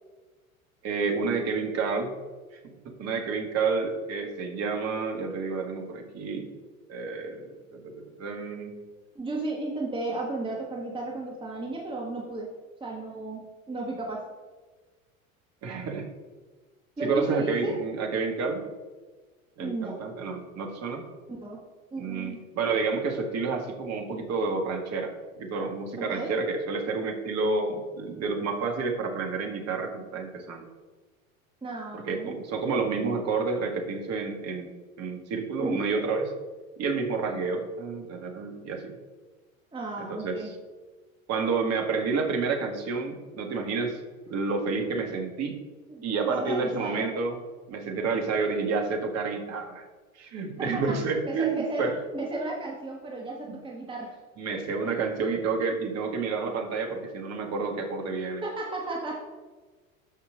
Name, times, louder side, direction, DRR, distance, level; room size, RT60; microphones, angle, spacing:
voice 1, 0.8-2.1 2.6-6.5 6.9-8.8 15.6-16.1 17.0-18.6 19.6-21.0 22.0-30.7 31.9-34.7 35.0-36.3 36.8-38.9 40.0-40.6 41.3-44.0 44.3-45.6 46.0-47.4 47.7-49.8 50.2-52.0 53.5-53.6 54.4-58.5, right 4 dB, 40° right, 3 dB, 1.9 m, -29 dB
voice 2, 9.1-12.5 12.8-14.3 17.0-17.7 19.6-20.0 21.4-21.6 21.9-22.4 26.0-26.3 31.6-32.4 35.6-35.9 39.7-40.5 45.9-47.1 50.4-54.2 58.4-59.1, right 2 dB, 10° right, -2 dB, 1.5 m, -34 dB
13.0 x 5.6 x 3.9 m, 1.3 s
figure-of-eight pair, 75°, 42 cm